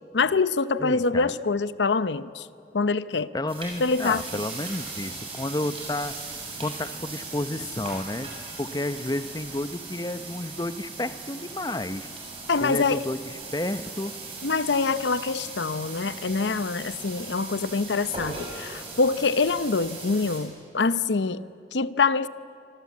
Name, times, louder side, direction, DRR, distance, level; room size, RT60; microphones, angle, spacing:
voice 1, 0.1-2.5 2.7-3.3 3.8-4.2 12.5-13.0 14.4-22.3, left 4 dB, 85° left, 15 dB, 0.7 m, -25 dB
voice 2, 0.8-1.3 3.3-6.1 6.6-8.3 8.6-12.1 12.6-14.1, left 1 dB, 20° left, 12 dB, 0.7 m, -31 dB
sound 1, 3.5-20.4, right 3 dB, 30° right, 7.1 m, -39 dB
26.0 x 25.5 x 8.5 m, 2.5 s
head